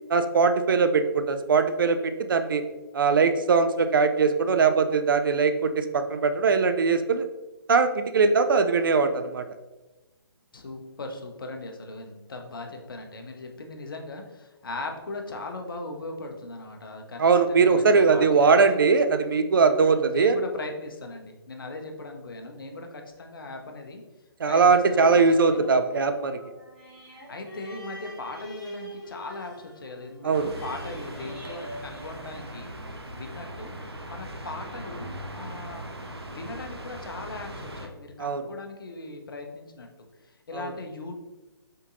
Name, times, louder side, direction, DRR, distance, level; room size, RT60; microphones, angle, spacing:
voice 1, 0.1-2.6 2.9-7.2 7.7-9.4 17.2-20.4 24.4-26.4 30.2-30.5 38.2-38.4 40.5-40.7, right 4 dB, 60° right, 8 dB, 0.4 m, -21 dB
voice 2, 10.5-18.8 19.8-24.0 24.4-25.7 27.3-32.7 33.1-33.8 34.1-35.9 36.2-41.2, left 2 dB, 60° left, 3 dB, 0.8 m, -39 dB
sound 1, 24.9-32.8 33.3-33.4, equal, 5° right, 1.5 m, -44 dB
sound 2, 30.3-37.9, right 1 dB, 90° right, 0.7 m, -39 dB
5.2 x 3.9 x 2.6 m, 1.1 s
figure-of-eight pair, 135°, 13 cm